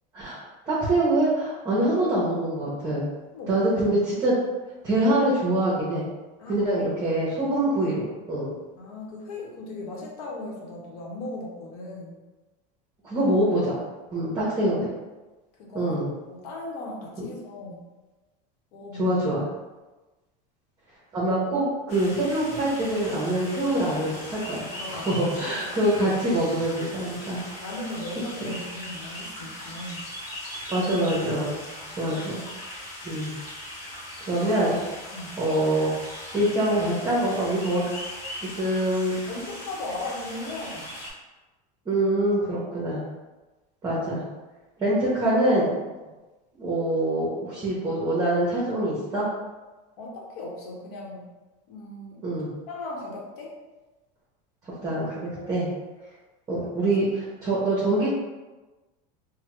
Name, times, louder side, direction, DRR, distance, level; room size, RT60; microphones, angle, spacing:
voice 1, 0.1-3.1 3.5-4.4 4.8-6.1 6.5-8.0 8.3-8.5 13.0-13.8 14.1-14.9 15.7-16.1 17.2-17.3 19.0-19.4 21.1-27.4 28.4-28.5 30.7-31.5 32.0-32.4 33.0-33.3 34.3-34.8 35.4-35.9 36.3-37.8 38.4-39.2 41.9-43.0 43.8-44.2 44.8-45.7 46.6-49.3 52.2-52.5 54.8-55.7 56.5-58.1, right 1 dB, 20° right, -8 dB, 0.7 m, -24 dB
voice 2, 3.3-4.1 6.4-6.9 8.8-12.2 14.1-14.3 15.6-17.8 18.7-19.1 24.8-25.6 27.6-30.0 31.8-31.9 35.1-35.3 39.3-40.9 41.9-42.1 42.5-42.7 50.0-51.3 51.7-52.3 52.7-53.5 55.4-55.7 56.8-56.9, left 2 dB, 85° left, -2 dB, 0.9 m, -38 dB
sound 1, 21.9-41.1, left 1 dB, 40° left, 1.0 m, -39 dB
3.4 x 2.1 x 2.9 m, 1.2 s
supercardioid pair, 150°, 19 cm